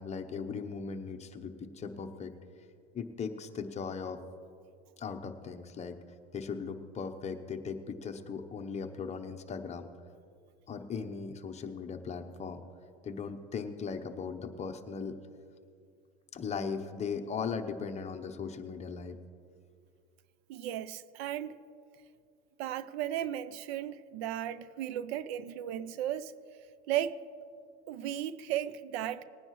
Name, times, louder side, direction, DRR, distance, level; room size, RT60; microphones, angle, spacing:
voice 1, 0.0-2.3 2.9-4.2 5.0-6.0 6.3-9.9 10.7-12.6 13.0-15.2 16.3-19.2, left 5 dB, 20° left, 0.8 m, -38 dB
voice 2, 20.5-21.6 22.6-26.3 26.9-27.2 27.9-29.2, right 11 dB, 80° right, 0.6 m, -35 dB
19.5 x 9.7 x 3.1 m
supercardioid pair, 130°, 31 cm